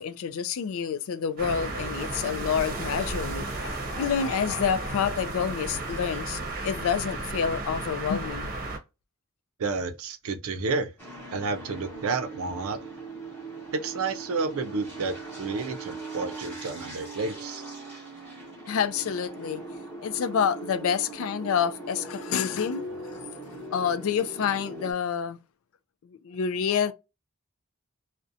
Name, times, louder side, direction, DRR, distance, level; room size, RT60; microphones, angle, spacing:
voice 1, 0.0-8.5 18.7-19.6 20.0-23.3 23.7-25.4 26.0-26.9, left 7 dB, 70° left, 0.3 m, -28 dB
sound 1, 1.4-8.8, right 2 dB, 40° right, 0.7 m, -33 dB
voice 2, 9.6-10.9 11.3-12.8 13.7-17.6, right 4 dB, 75° right, 0.5 m, -30 dB
sound 2, 11.0-24.9, right 2 dB, 5° left, 0.9 m, -40 dB
2.5 x 2.1 x 2.5 m
head